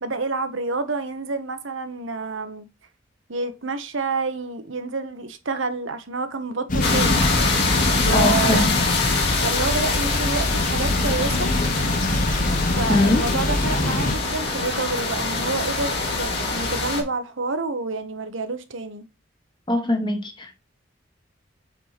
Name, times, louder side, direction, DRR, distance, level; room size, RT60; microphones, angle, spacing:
voice 1, 0.0-2.7 3.3-7.2 8.0-8.7 9.4-11.5 12.8-19.0, right 3 dB, 75° right, 1.2 m, -28 dB
sound 1, 6.7-14.1, left 2 dB, 40° left, 0.9 m, -24 dB
sound 2, 6.8-17.0, left 3 dB, 60° left, 2.8 m, -25 dB
voice 2, 8.1-8.7 12.9-13.2 19.7-20.6, left 2 dB, 25° left, 1.2 m, -22 dB
8.2 x 4.6 x 4.1 m
head